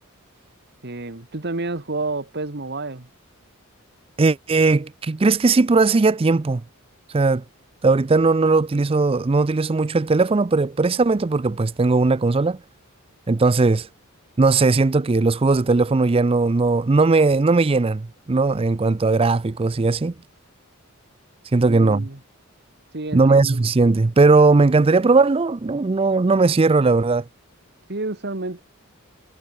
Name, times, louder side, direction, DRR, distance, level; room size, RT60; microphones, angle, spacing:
voice 1, 0.8-3.1 21.6-22.2 22.9-23.7 27.9-28.6, right 2 dB, 50° right, 1.7 m, -30 dB
voice 2, 4.2-6.6 7.1-7.4 7.8-12.6 13.3-13.9 14.4-20.1 21.5-22.1 23.1-27.3, right 3 dB, 25° right, 0.4 m, -18 dB
head